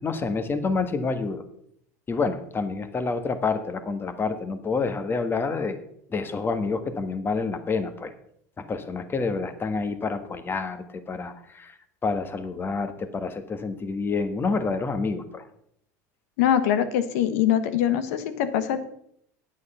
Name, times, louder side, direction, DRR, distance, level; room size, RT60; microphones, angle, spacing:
voice 1, 0.0-1.4 2.1-5.8 6.1-8.1 8.6-11.8 12.0-15.5, left 4 dB, 25° left, 9 dB, 1.5 m, -28 dB
voice 2, 16.4-18.8, left 10 dB, 70° left, 11 dB, 1.3 m, -23 dB
9.5 x 8.9 x 5.6 m, 0.69 s
hypercardioid pair, 90°, 9 cm